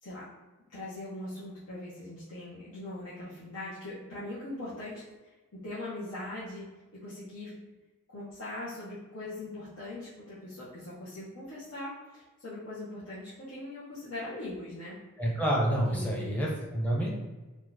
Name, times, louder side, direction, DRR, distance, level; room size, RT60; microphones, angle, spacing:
voice 1, 0.7-6.7 6.9-7.7 8.1-15.0 15.9-16.4, left 2 dB, 80° left, -11 dB, 1.0 m, -41 dB
voice 2, 15.2-17.1, right 1 dB, 5° left, -5 dB, 0.7 m, -28 dB
3.0 x 2.4 x 3.9 m, 1.2 s
head